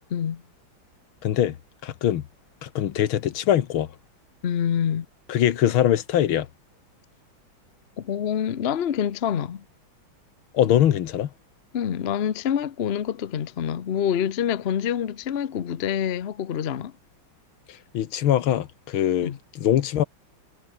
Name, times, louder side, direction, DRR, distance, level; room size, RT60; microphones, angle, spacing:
voice 1, 0.1-0.4 4.4-5.1 8.0-9.6 11.7-16.9 19.2-19.4, left 9 dB, 50° left, 0.7 m, -26 dB
voice 2, 1.2-1.6 1.8-2.2 2.6-3.9 5.3-6.5 10.5-11.3 17.7-20.0, left 11 dB, 85° left, 2.0 m, -22 dB
omnidirectional pair, 2.2 m